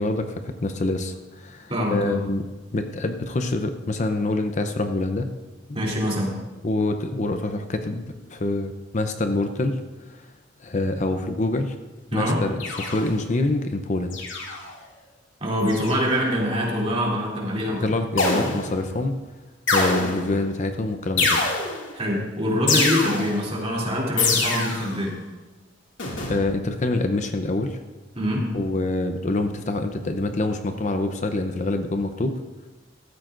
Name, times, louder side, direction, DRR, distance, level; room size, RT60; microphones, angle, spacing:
voice 1, 0.0-2.4 2.7-5.3 6.6-8.0 8.3-9.8 10.1-10.3 10.6-11.8 12.1-14.2 17.6-19.2 19.7-21.5 26.3-27.8 28.5-32.4, left 2 dB, 40° left, 7 dB, 0.7 m, -26 dB
voice 2, 1.7-2.2 5.7-6.4 12.1-12.4 15.4-17.9 21.9-25.2 28.1-28.5, equal, 30° right, -3 dB, 3.0 m, -24 dB
sound 1, 12.6-13.3 14.1-14.7 15.6-16.2 18.2-18.9 19.7-20.4 21.2-22.0 22.7-23.5 24.2-25.0 26.0-26.4, left 3 dB, 80° left, 2.3 m, -25 dB
15.5 x 13.0 x 2.6 m, 1.2 s
head